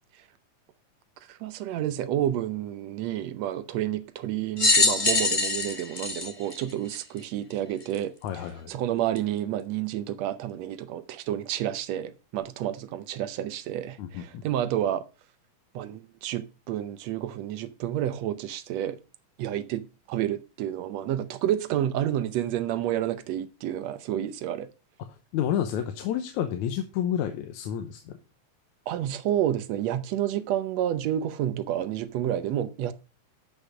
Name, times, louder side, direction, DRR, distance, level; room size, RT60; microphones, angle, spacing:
voice 1, 1.3-8.1 8.7-15.0 15.7-19.0 19.4-24.7 28.9-32.9, right 11 dB, 70° right, 1.8 m, -30 dB
sound 1, 4.6-7.2 7.9-8.0 9.2-9.3, left 3 dB, 35° left, 0.8 m, -24 dB
voice 2, 8.2-8.7 14.0-14.4 25.1-28.2, left 10 dB, 80° left, 2.2 m, -30 dB
11.5 x 5.6 x 5.0 m
omnidirectional pair, 3.5 m